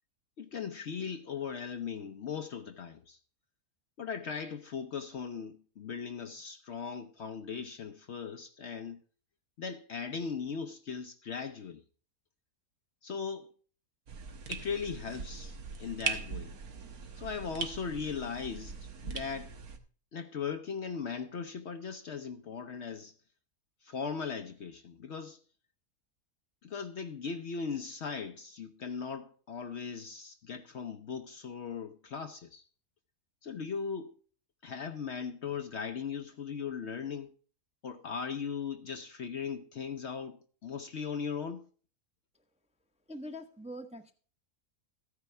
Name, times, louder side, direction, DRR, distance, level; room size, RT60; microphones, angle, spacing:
voice 1, 0.4-3.2 4.0-9.0 9.6-11.8 13.0-13.5 14.5-16.5 17.2-19.5 20.1-23.1 23.8-25.4 26.6-32.6 33.4-34.1 34.6-37.3 37.8-41.6, left 6 dB, 55° left, 0.9 m, -38 dB
sound 1, 14.1-19.8, right 5 dB, 85° right, 1.7 m, -40 dB
voice 2, 43.1-44.1, equal, 5° right, 0.7 m, -43 dB
13.5 x 9.6 x 3.3 m
omnidirectional pair, 1.5 m